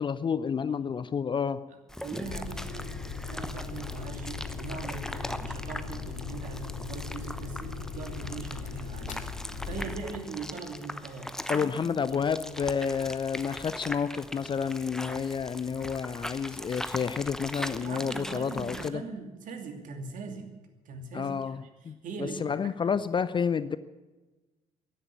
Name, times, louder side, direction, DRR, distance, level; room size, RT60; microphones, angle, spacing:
voice 1, 0.0-1.7 11.5-19.0 21.1-23.8, left 6 dB, 30° left, 16 dB, 0.6 m, -30 dB
sound 1, 1.9-18.9, left 1 dB, 5° left, 0.9 m, -40 dB
voice 2, 2.0-2.9 3.3-9.2 9.6-12.2 17.8-20.5 20.8-21.6 22.0-22.8, right 4 dB, 50° right, 5 dB, 2.6 m, -41 dB
sound 2, 2.2-10.3, left 5 dB, 45° left, 2.3 m, -38 dB
15.0 x 11.0 x 8.4 m, 1.2 s
figure-of-eight pair, 55°, 18 cm